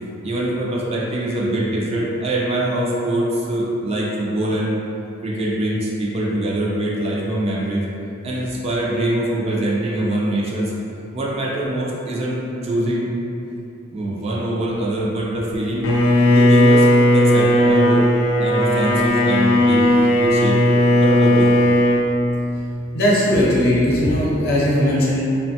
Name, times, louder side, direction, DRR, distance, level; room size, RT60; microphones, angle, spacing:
voice 1, 0.2-4.8 5.2-7.9 8.2-10.7 11.1-13.1 13.9-15.9 16.3-18.1 18.4-20.6 21.0-21.6, right 1 dB, 30° right, -4 dB, 0.3 m, -23 dB
Bowed string instrument, 15.8-22.1, left 1 dB, 80° left, 0.4 m, -15 dB
voice 2, 22.9-25.2, equal, 50° left, -7 dB, 0.7 m, -18 dB
3.2 x 2.1 x 2.7 m, 2.8 s
head